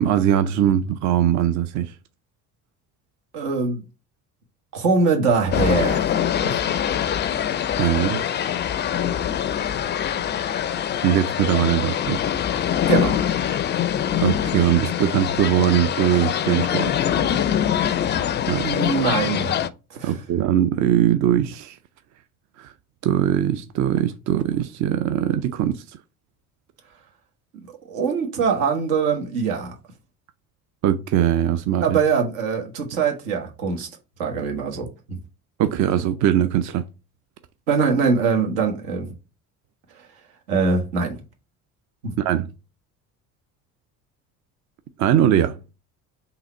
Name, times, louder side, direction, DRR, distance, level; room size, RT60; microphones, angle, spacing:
voice 1, 0.0-1.9 7.8-8.2 11.0-12.2 14.2-17.0 18.5-18.7 20.0-21.8 22.6-22.7 23.0-26.0 30.8-32.0 35.6-36.9 42.2-42.5 45.0-45.6, right 10 dB, 45° right, 0.5 m, -21 dB
voice 2, 3.3-3.8 4.7-6.0 6.4-6.6 12.9-13.2 18.6-19.6 19.9-20.2 27.9-29.7 31.8-33.9 34.2-35.2 37.7-39.1 40.5-41.2 42.0-42.1, right 5 dB, 75° right, 1.4 m, -22 dB
sound 1, 5.5-19.7, left 9 dB, 25° left, 0.4 m, -24 dB
3.9 x 2.8 x 4.2 m
hypercardioid pair, 60°, 43 cm